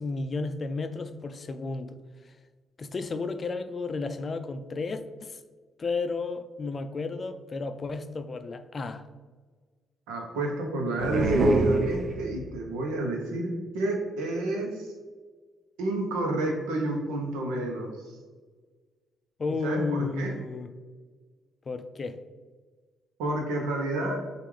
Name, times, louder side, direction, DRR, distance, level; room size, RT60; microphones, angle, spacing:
voice 1, 0.0-2.0 2.8-5.4 5.8-9.1 19.4-20.7 21.7-22.2, left 3 dB, 45° left, 0.4 m, -32 dB
voice 2, 10.1-14.9 15.8-18.2 19.6-20.3 23.2-24.2, right 1 dB, 85° right, 0.8 m, -30 dB
sound 1, 11.0-12.6, right 2 dB, 55° right, 0.6 m, -24 dB
6.6 x 2.5 x 3.2 m
hypercardioid pair, 50°, 0 cm